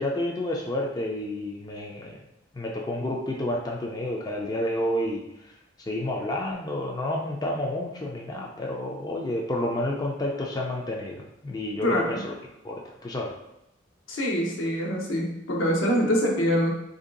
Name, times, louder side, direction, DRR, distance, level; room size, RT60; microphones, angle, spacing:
voice 1, 0.0-2.2 2.5-5.5 5.9-12.3 12.6-13.4, left 1 dB, 20° left, -1 dB, 0.4 m, -30 dB
voice 2, 11.8-12.2 14.1-16.7, equal, 80° left, -1 dB, 0.9 m, -25 dB
3.2 x 2.6 x 3.8 m, 0.87 s
head